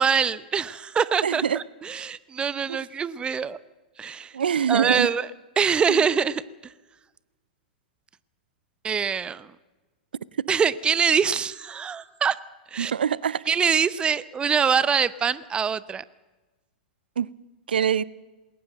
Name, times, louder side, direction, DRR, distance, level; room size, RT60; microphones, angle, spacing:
voice 1, 0.0-3.6 4.0-4.3 4.7-5.3 5.6-6.4 8.8-9.5 10.5-12.4 12.7-12.9 13.5-16.0, right 6 dB, 20° right, 0.8 m, -24 dB
voice 2, 1.2-1.6 2.7-2.9 4.3-5.1 5.9-6.0 12.8-13.4 17.2-17.3 17.7-18.0, right 8 dB, 80° right, 0.6 m, -24 dB
sound 1, 11.3-13.2, left 7 dB, 60° left, 6.5 m, -56 dB
21.0 x 18.5 x 7.7 m
hypercardioid pair, 105°, 5 cm